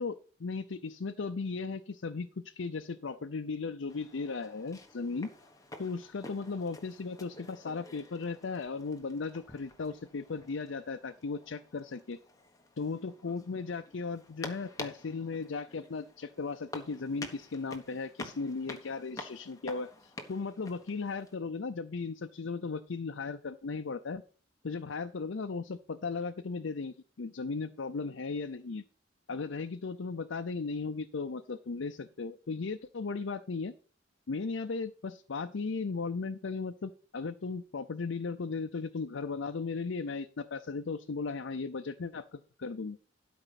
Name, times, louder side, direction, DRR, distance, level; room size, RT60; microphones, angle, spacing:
voice 1, 0.0-5.3 5.8-12.2 12.8-24.2 24.6-28.8 29.3-33.7 34.3-43.0, left 4 dB, 80° left, 7 dB, 0.6 m, -36 dB
sound 1, 3.9-21.4, left 2 dB, 20° left, 1.3 m, -49 dB
12.5 x 5.1 x 5.8 m, 0.39 s
head